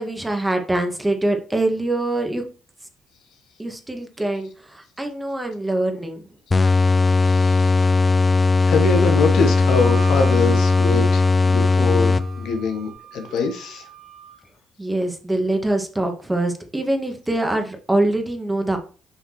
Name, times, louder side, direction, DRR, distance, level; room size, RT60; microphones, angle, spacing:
voice 1, 0.0-2.4 3.6-6.2 14.8-18.8, right 2 dB, 15° right, 1.8 m, -24 dB
voice 2, 6.5-7.9 8.7-13.8, left 4 dB, 60° left, 1.1 m, -24 dB
sound 1, 6.5-12.6, left 3 dB, 25° left, 0.4 m, -18 dB
Wind instrument woodwind instrument, 9.4-14.4, right 11 dB, 35° right, 1.0 m, -40 dB
8.3 x 5.7 x 3.1 m
figure-of-eight pair, 45°, 0 cm